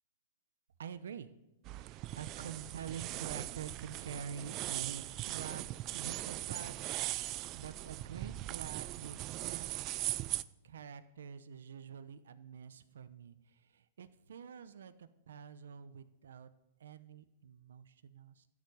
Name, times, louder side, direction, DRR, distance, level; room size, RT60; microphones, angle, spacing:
voice 1, 0.8-1.3 1.7-5.6 5.9-9.7 10.6-16.5 16.8-18.5, right 7 dB, 85° right, 12 dB, 0.9 m, -47 dB
sound 1, 1.7-10.4, right 16 dB, 35° right, 0.5 m, -40 dB
13.5 x 7.4 x 9.6 m, 0.93 s
hypercardioid pair, 145°, 0 cm